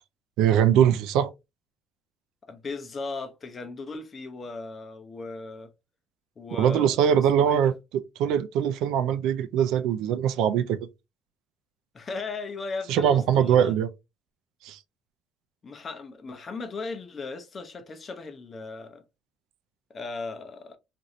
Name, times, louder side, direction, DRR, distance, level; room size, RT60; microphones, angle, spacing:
voice 1, 0.4-1.3 6.5-7.7 8.2-10.8 12.9-13.9 14.6-14.8, right 9 dB, 75° right, 0.4 m, -22 dB
voice 2, 2.4-5.7 6.4-7.1 7.3-7.7 11.9-13.7 15.6-19.0 19.9-20.8, left 3 dB, 30° left, 0.6 m, -37 dB
3.0 x 2.5 x 2.6 m
cardioid pair, 135°, 0 cm